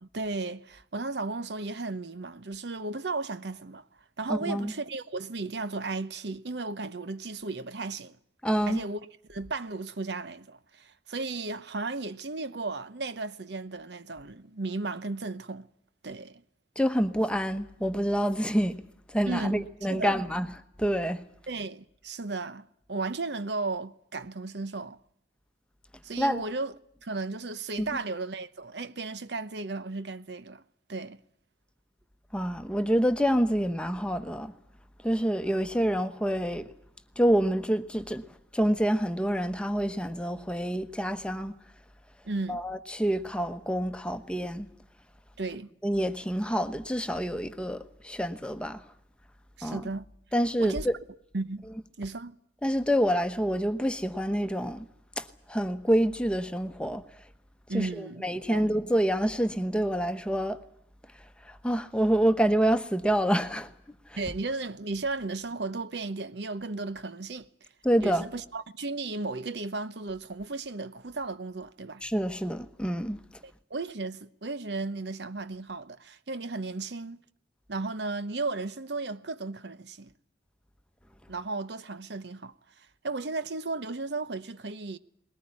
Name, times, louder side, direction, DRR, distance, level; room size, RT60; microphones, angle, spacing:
voice 1, 0.0-3.8 4.2-8.2 8.7-9.0 9.3-15.7 16.0-16.4 19.3-20.2 21.5-25.0 26.0-26.7 27.0-30.6 30.9-31.2 42.2-42.6 45.4-45.7 49.6-50.0 50.6-50.9 51.3-51.7 52.0-52.3 57.7-58.7 64.2-67.5 68.0-72.0 73.4-77.2 77.7-80.1 81.3-85.0, right 3 dB, 70° right, 0.9 m, -35 dB
voice 2, 4.3-4.7 8.4-8.8 16.8-20.5 20.8-21.2 26.2-26.4 27.8-27.9 32.3-34.5 35.0-36.7 37.2-38.2 38.5-41.6 42.5-44.7 45.8-48.8 49.6-49.8 50.3-50.9 52.6-54.9 55.2-57.0 57.7-60.6 61.4-63.7 64.1-64.2 67.8-68.3 72.0-73.2, equal, 5° left, 1.0 m, -27 dB
21.0 x 19.0 x 9.8 m
head